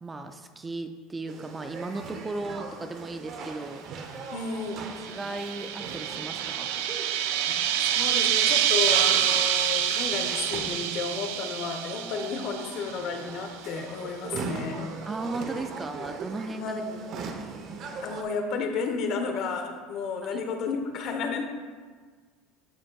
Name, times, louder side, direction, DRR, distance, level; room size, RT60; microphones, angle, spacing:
voice 1, 0.0-3.8 5.0-6.7 15.1-17.2 20.2-20.4, right 2 dB, 15° right, 7 dB, 0.3 m, -36 dB
sound 1, 1.3-18.2, right 4 dB, 40° right, 0.8 m, -40 dB
voice 2, 4.3-4.8 7.8-14.9 16.6-17.0 18.0-21.4, left 5 dB, 45° left, 5 dB, 0.9 m, -32 dB
sound 2, 4.8-13.1, right 10 dB, 85° right, 0.5 m, -27 dB
12.0 x 6.2 x 2.3 m, 1.5 s
cardioid pair, 160°, 0 cm